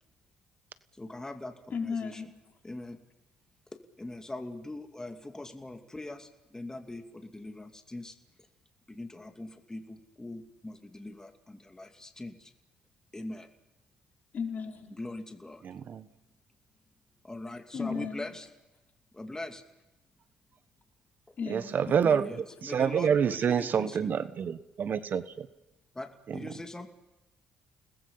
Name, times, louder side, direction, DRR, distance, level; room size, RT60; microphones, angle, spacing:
voice 1, 1.0-2.2 2.6-3.0 3.7-8.2 8.9-12.5 13.1-13.5 14.9-15.6 17.2-18.5 19.1-19.6 22.3-24.1 25.9-26.9, left 2 dB, 15° left, 5 dB, 2.6 m, -42 dB
voice 2, 1.7-2.3 14.3-15.0 17.7-18.2 21.4-22.3, left 5 dB, 50° left, 2 dB, 5.2 m, -35 dB
voice 3, 15.6-16.1 21.5-25.5 26.3-26.5, right 7 dB, 55° right, 13 dB, 1.3 m, -28 dB
30.0 x 20.0 x 5.6 m, 0.99 s
supercardioid pair, 60°, 4 cm